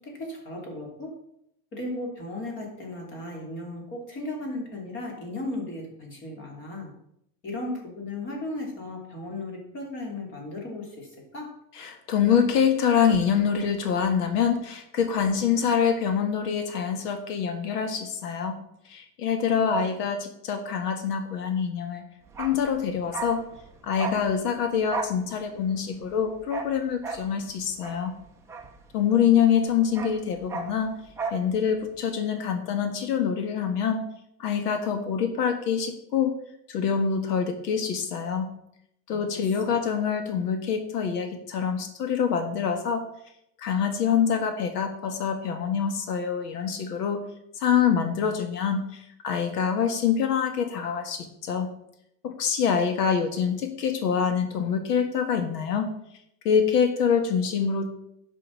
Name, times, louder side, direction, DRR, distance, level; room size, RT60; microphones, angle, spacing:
voice 1, 0.2-1.1 1.7-6.9 7.4-10.8 11.3-11.5 39.1-39.2, left 2 dB, 25° left, 0 dB, 3.0 m, -35 dB
voice 2, 11.7-18.6 18.9-22.1 22.4-23.4 23.8-28.2 28.9-30.9 31.3-34.0 34.4-36.3 36.7-38.5 39.1-43.0 43.6-47.2 47.6-51.7 52.2-55.9 56.4-57.9, left 7 dB, 85° left, 6 dB, 1.7 m, -25 dB
Bark, 22.3-29.3 29.6-31.5 31.7-31.9, right 4 dB, 5° right, 0.5 m, -36 dB
11.0 x 5.5 x 6.3 m, 0.76 s
supercardioid pair, 160°, 46 cm